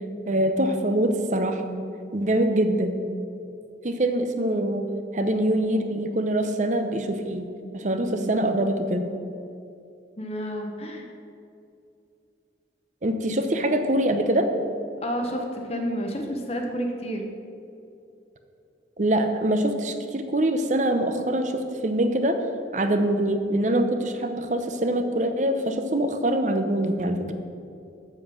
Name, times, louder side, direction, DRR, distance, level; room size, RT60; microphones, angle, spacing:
voice 1, 0.3-1.7 2.1-2.9 3.8-4.8 5.1-9.0 13.0-14.5 19.0-22.4 22.7-27.3, right 1 dB, 40° right, 7 dB, 0.7 m, -24 dB
voice 2, 10.2-11.1 15.0-17.3, equal, 35° left, 2 dB, 0.9 m, -30 dB
7.6 x 7.5 x 6.2 m, 2.6 s
head